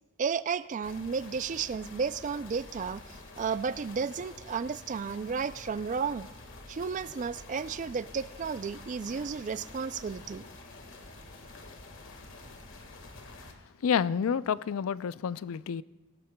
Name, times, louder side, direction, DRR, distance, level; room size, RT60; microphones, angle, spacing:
voice 1, 0.2-3.0 3.4-6.3 6.7-10.4, right 5 dB, 35° right, 0.3 m, -33 dB
sound 1, 0.8-13.5, left 2 dB, 65° left, 1.6 m, -48 dB
voice 2, 13.8-15.8, left 7 dB, 90° left, 0.4 m, -29 dB
21.5 x 17.5 x 2.2 m
head